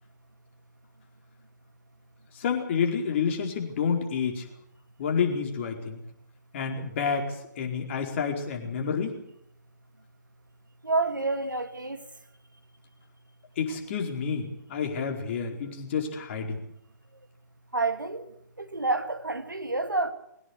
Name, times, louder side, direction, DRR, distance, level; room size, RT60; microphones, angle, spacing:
voice 1, 2.3-4.5 5.0-6.0 6.5-9.2 13.6-16.6, left 6 dB, 40° left, 4.7 m, -29 dB
voice 2, 10.8-12.0 17.7-18.3 18.6-20.1, right 3 dB, 85° right, 2.5 m, -28 dB
22.5 x 18.0 x 8.3 m
figure-of-eight pair, 140°, 10 cm